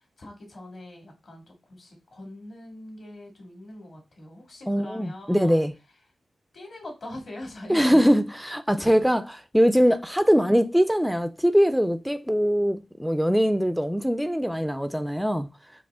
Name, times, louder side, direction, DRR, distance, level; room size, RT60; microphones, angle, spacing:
voice 1, 0.2-5.6 6.5-8.1 8.8-9.0, left 1 dB, 65° left, 1.9 m, -42 dB
voice 2, 4.7-5.7 7.7-15.5, equal, ahead, 0.3 m, -22 dB
4.8 x 2.4 x 3.5 m
cardioid pair, 70°, 0 cm